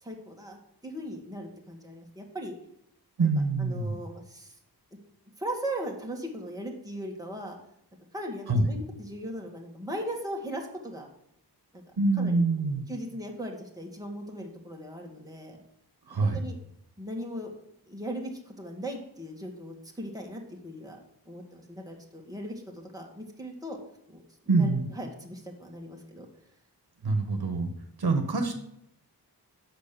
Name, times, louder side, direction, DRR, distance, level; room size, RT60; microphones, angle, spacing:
voice 1, 0.0-2.5 3.2-3.3 3.6-4.5 5.4-7.6 8.1-11.1 11.7-11.8 12.2-15.6 16.2-16.6 17.0-17.5 17.9-21.0 21.3-23.8 24.1-24.2 24.4-26.3, right 1 dB, 10° right, 0 dB, 1.9 m, -38 dB
voice 2, 3.2-4.0 8.5-8.7 12.0-12.8 16.1-16.4 24.5-24.8 27.0-27.7 28.0-28.5, right 3 dB, 65° right, 5 dB, 1.3 m, -25 dB
8.1 x 6.1 x 6.8 m, 0.76 s
wide cardioid pair, 80°, 40 cm